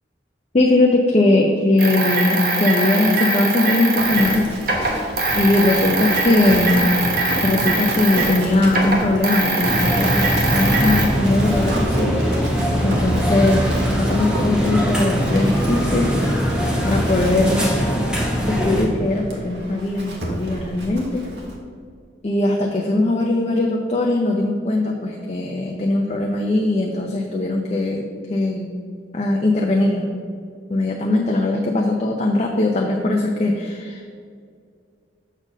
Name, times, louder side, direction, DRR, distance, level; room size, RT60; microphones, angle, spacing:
voice 1, 0.5-4.5 5.3-6.9 7.4-12.2 12.8-13.7 14.0-16.1 16.8-17.7 18.4-21.3 22.2-28.0 28.3-28.8 29.1-30.1 30.7-34.0, left 2 dB, 35° left, 1 dB, 0.5 m, -20 dB
sound 1, 1.8-8.4 8.7-11.1, right 2 dB, 55° right, 1.1 m, -22 dB
Livestock farm animals working animals, 3.9-21.5, right 1 dB, 75° right, 1.3 m, -31 dB
sound 2, 9.6-18.9, equal, 5° right, 1.0 m, -21 dB
6.3 x 4.3 x 6.2 m, 2.2 s
head